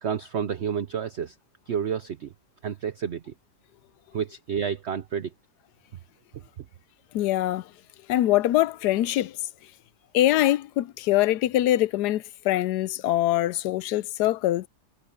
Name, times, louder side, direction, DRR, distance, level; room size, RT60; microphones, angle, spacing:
voice 1, 0.0-1.3 1.7-2.3 2.6-3.3 4.1-5.3, right 7 dB, 55° right, 0.8 m, -30 dB
voice 2, 7.1-7.7 8.1-9.4 10.1-14.7, left 14 dB, 75° left, 1.1 m, -23 dB
omnidirectional pair, 1.9 m